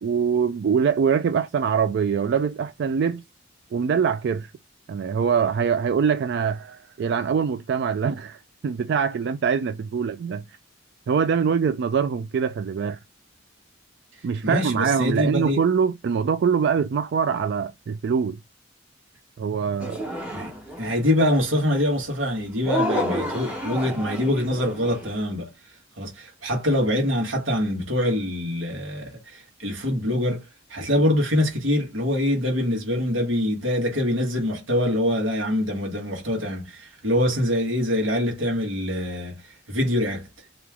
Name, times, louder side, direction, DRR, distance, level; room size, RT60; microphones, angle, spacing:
voice 1, 0.0-3.2 3.7-4.5 4.9-10.4 11.1-13.0 14.2-18.4 19.4-20.0, right 6 dB, 60° right, 0.3 m, -23 dB
voice 2, 14.4-15.6 20.3-20.5 20.8-25.5 26.0-30.4 30.7-39.4 39.7-40.3, left 1 dB, 90° right, 1.6 m, -24 dB
sound 1, 19.8-21.0 22.7-25.2, equal, 5° right, 1.1 m, -29 dB
3.1 x 2.9 x 3.5 m
head